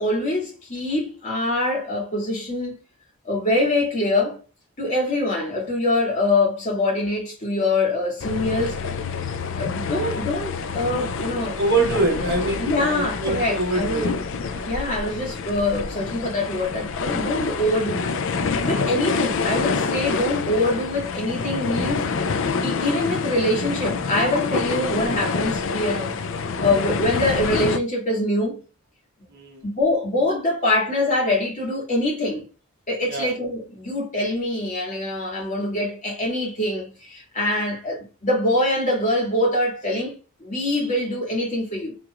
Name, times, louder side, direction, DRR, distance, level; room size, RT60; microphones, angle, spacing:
voice 1, 0.0-2.8 3.2-4.4 4.8-8.8 9.6-11.6 12.6-14.0 14.7-18.1 18.4-22.1 22.4-26.2 26.6-28.6 29.6-32.4 32.9-42.0, left 1 dB, 35° left, 2.1 m, -24 dB
sound 1, 8.2-27.8, left 4 dB, 60° left, 0.4 m, -27 dB
voice 2, 11.5-14.1 14.5-14.7 29.3-29.7 33.1-33.3, right 2 dB, 50° right, 1.5 m, -24 dB
4.7 x 3.5 x 2.4 m
head